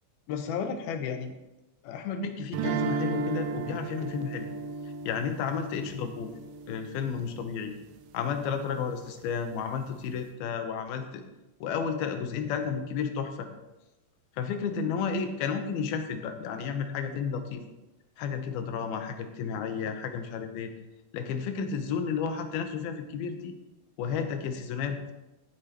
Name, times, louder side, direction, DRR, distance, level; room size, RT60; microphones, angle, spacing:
voice 1, 0.3-1.3 1.8-4.5 5.1-6.3 6.7-7.7 8.1-11.2 11.6-13.5 14.4-17.6 18.2-20.7 21.1-23.5 24.0-25.0, left 6 dB, 90° left, 7 dB, 2.8 m, -32 dB
sound 1, 2.5-7.5, right 5 dB, 85° right, 2.3 m, -34 dB
14.0 x 8.4 x 3.0 m, 0.99 s
omnidirectional pair, 4.2 m